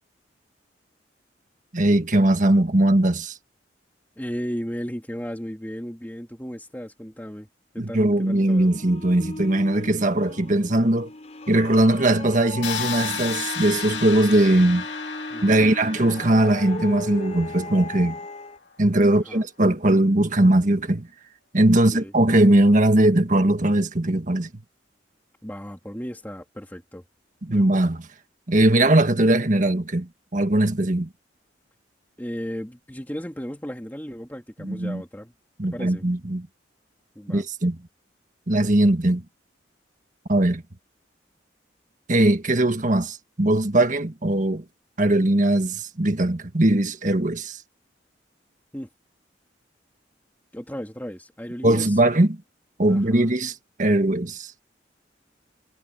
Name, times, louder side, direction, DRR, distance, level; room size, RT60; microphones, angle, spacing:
voice 1, 1.7-3.4 7.8-11.1 11.5-14.8 15.4-18.2 18.8-21.1 21.5-24.5 27.4-28.0 28.5-31.1 34.6-35.0 35.6-36.5 37.3-37.8 38.5-39.2 40.3-40.6 42.1-44.6 45.0-47.6 51.6-52.4 52.8-54.5, right 1 dB, 45° right, 1.6 m, -20 dB
voice 2, 4.2-7.5 7.7-8.7 15.3-15.8 19.1-19.4 21.7-22.1 25.4-27.0 27.5-27.9 32.2-35.3 35.6-36.0 37.1-37.4 48.7-48.9 50.5-52.0 52.9-53.3, equal, 10° left, 2.8 m, -35 dB
sound 1, 8.1-18.6, left 2 dB, 35° left, 3.8 m, -37 dB
sound 2, 12.6-18.4, left 7 dB, 75° left, 2.4 m, -34 dB
head